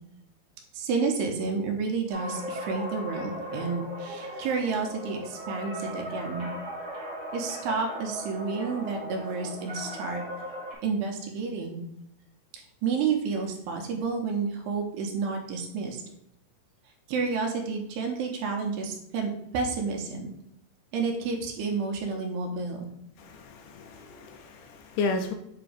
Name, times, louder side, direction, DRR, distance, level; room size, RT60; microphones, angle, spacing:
voice 1, 0.7-6.5 7.3-10.2 10.8-11.8 12.8-16.0 17.1-20.3 20.9-22.9, right 5 dB, 80° right, 2 dB, 2.8 m, -30 dB
sound 1, 2.1-10.7, equal, 55° right, 1.3 m, -38 dB
voice 2, 23.2-25.3, left 3 dB, 80° left, 5 dB, 2.5 m, -33 dB
7.9 x 3.0 x 4.9 m, 0.77 s
omnidirectional pair, 4.9 m